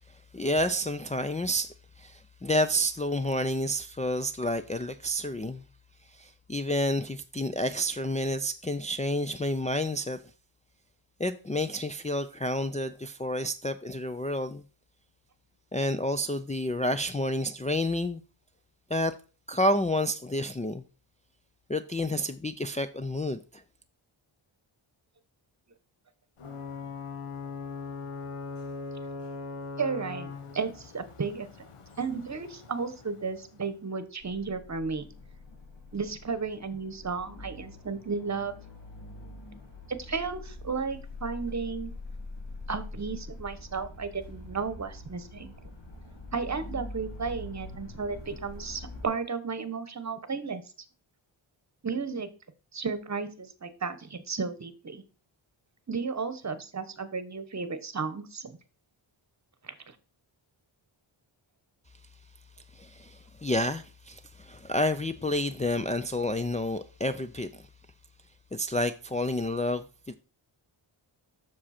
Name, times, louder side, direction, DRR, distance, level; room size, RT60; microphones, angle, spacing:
voice 1, 0.3-5.6 6.1-10.2 11.2-14.6 15.7-18.2 18.9-19.1 19.5-20.8 21.7-23.6 62.7-67.7 68.5-70.1, left 1 dB, 15° left, 0.4 m, -29 dB
Ocean / Boat Water vehicle / Alarm, 26.4-33.9, left 4 dB, 90° left, 1.3 m, -41 dB
voice 2, 29.8-31.5 32.0-35.1 35.9-38.6 39.9-41.9 42.7-45.5 46.3-50.6 51.8-52.3 52.7-55.0 55.9-58.6 59.6-59.9, right 5 dB, 35° right, 1.1 m, -33 dB
sound 1, 34.2-49.1, left 2 dB, 55° left, 2.4 m, -44 dB
7.4 x 6.2 x 4.3 m
wide cardioid pair, 85°, 50 cm